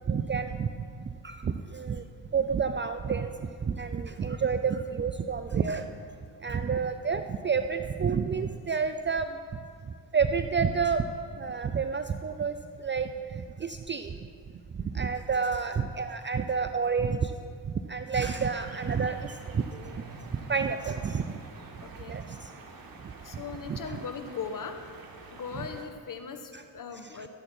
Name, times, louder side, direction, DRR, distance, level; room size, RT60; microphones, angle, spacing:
voice 1, 0.1-0.9 1.2-2.0 2.3-3.3 3.6-5.9 6.4-9.3 10.1-11.1 11.4-14.2 14.8-17.3 17.6-20.0 20.5-21.4 22.1-22.5 23.0-23.4 23.7-24.0 25.5-25.7 26.5-26.6 27.1-27.3, right 6 dB, 25° right, 8 dB, 0.5 m, -29 dB
sound 1, 18.1-25.9, right 3 dB, 50° right, 1.7 m, -48 dB
voice 2, 21.8-22.2 23.2-24.8 25.3-27.3, left 6 dB, 45° left, 7 dB, 1.2 m, -39 dB
13.0 x 8.0 x 4.4 m, 2.2 s
supercardioid pair, 60°, 44 cm